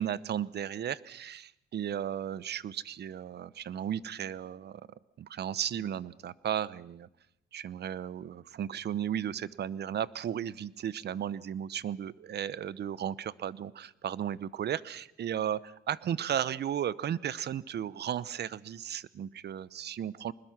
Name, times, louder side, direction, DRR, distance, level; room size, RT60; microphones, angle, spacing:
voice 1, 0.0-4.8 5.2-7.1 7.5-20.3, right 9 dB, 55° right, 19 dB, 0.8 m, -35 dB
24.0 x 21.0 x 6.0 m, 0.82 s
cardioid pair, 90°, 20 cm